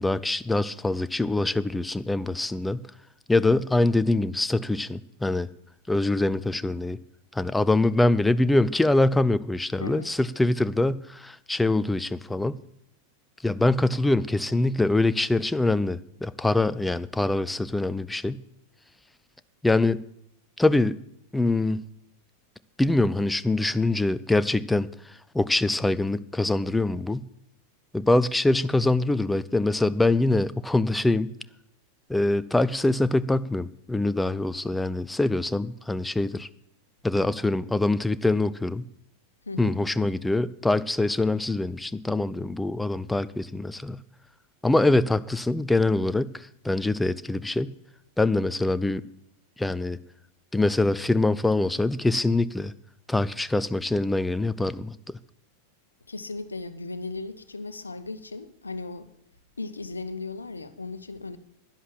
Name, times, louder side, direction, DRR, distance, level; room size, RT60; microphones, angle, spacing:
voice 1, 0.0-2.9 3.3-5.5 5.9-7.0 7.3-12.6 13.4-18.4 19.6-20.0 20.6-21.0 21.3-21.8 22.8-24.9 25.3-27.3 27.9-31.3 32.1-36.5 37.0-38.9 39.6-44.0 44.6-47.7 48.2-49.0 49.6-50.0 50.5-52.7 53.1-55.2, left 2 dB, 5° left, 16 dB, 0.5 m, -24 dB
voice 2, 9.8-10.1 39.5-39.8 56.1-59.1 59.6-61.4, left 3 dB, 80° left, 12 dB, 1.0 m, -36 dB
11.0 x 10.5 x 7.6 m, 0.75 s
figure-of-eight pair, 90°, 0 cm